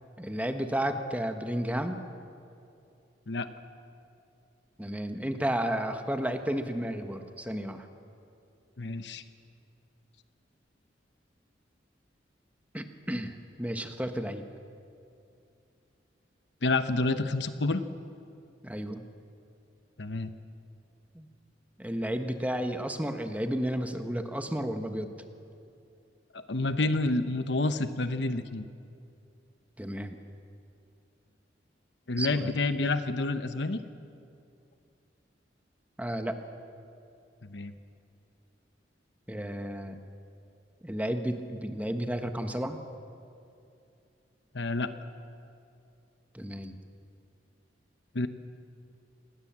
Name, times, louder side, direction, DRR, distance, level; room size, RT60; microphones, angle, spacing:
voice 1, 0.2-2.0 4.8-7.9 12.7-14.4 18.6-19.0 21.1-21.3 21.8-25.1 29.8-30.2 32.2-32.5 36.0-36.4 39.3-40.0 40.8-42.8 46.3-46.8, equal, 10° right, 6 dB, 1.3 m, -32 dB
voice 2, 8.8-9.2 16.6-17.8 20.0-20.3 26.3-28.6 32.1-33.8 37.4-37.7 44.5-44.9 48.1-48.3, left 2 dB, 70° left, 10 dB, 1.0 m, -29 dB
26.5 x 19.5 x 7.5 m, 2.6 s
head